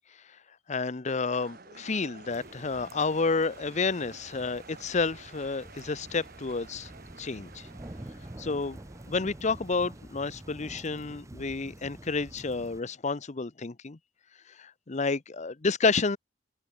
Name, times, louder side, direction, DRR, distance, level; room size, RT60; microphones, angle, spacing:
voice 1, 0.7-6.9 7.2-7.5 8.4-8.8 9.1-14.0 14.6-16.2, left 4 dB, 40° left, 0.8 m, -30 dB
sound 1, 1.1-10.5, right 4 dB, 55° right, 5.8 m, -51 dB
sound 2, 2.3-12.8, right 1 dB, 15° right, 0.7 m, -48 dB
head